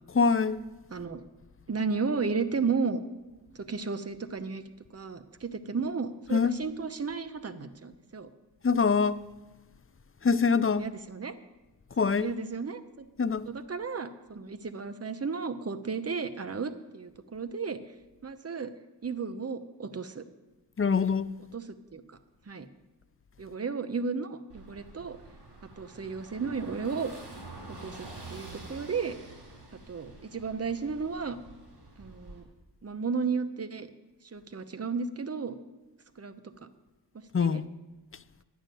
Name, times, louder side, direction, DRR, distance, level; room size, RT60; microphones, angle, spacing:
voice 1, 0.1-0.6 6.3-6.6 8.6-9.2 10.2-10.9 12.0-12.3 13.2-13.5 20.8-21.3 37.3-37.7, left 5 dB, 30° left, 0.5 m, -24 dB
voice 2, 1.7-3.0 3.5-4.6 4.9-8.3 10.8-11.3 12.2-13.1 13.5-17.8 18.2-18.7 19.0-20.2 21.5-21.6 21.9-22.2 22.5-22.7 23.4-25.2 25.8-27.1 27.8-29.1 29.9-31.4 32.0-32.4 32.8-33.9 34.2-35.6 36.2-36.7 37.4-37.6, right 5 dB, 35° right, 0.9 m, -33 dB
Car passing by / Engine, 24.5-32.4, right 2 dB, 70° right, 3.2 m, -47 dB
11.0 x 6.5 x 9.1 m
wide cardioid pair, 70°, 42 cm